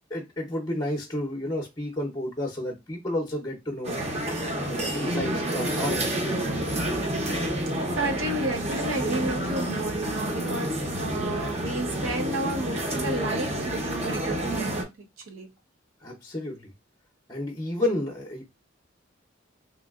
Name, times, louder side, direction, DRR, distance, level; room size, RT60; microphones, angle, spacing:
voice 1, 0.1-4.0 4.6-6.6 16.0-16.7 17.3-18.4, left 1 dB, 20° left, 0.6 m, -31 dB
sound 1, 3.8-14.8, right 1 dB, 35° right, 0.7 m, -29 dB
voice 2, 7.9-15.5, right 2 dB, 90° right, 0.7 m, -32 dB
3.1 x 2.7 x 2.3 m
head